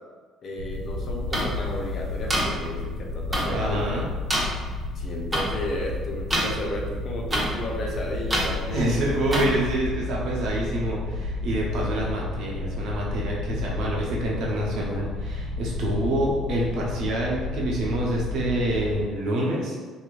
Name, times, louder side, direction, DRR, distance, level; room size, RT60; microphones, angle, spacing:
voice 1, 0.4-3.8 5.0-8.9, left 1 dB, 55° left, -1 dB, 0.6 m, -33 dB
sound 1, 0.6-19.0, left 2 dB, 85° right, 0.3 m, -32 dB
sound 2, 1.3-1.4 2.3-2.4 3.3-3.4 4.3-4.4 5.3-5.4 6.3-6.4 7.3-7.4 8.3-8.5 9.3-9.4, right 1 dB, 25° right, 0.9 m, -24 dB
voice 2, 3.5-4.1 8.7-19.8, right 1 dB, 65° right, -3 dB, 0.7 m, -27 dB
3.0 x 2.6 x 2.4 m, 1.4 s
hypercardioid pair, 60°, 0 cm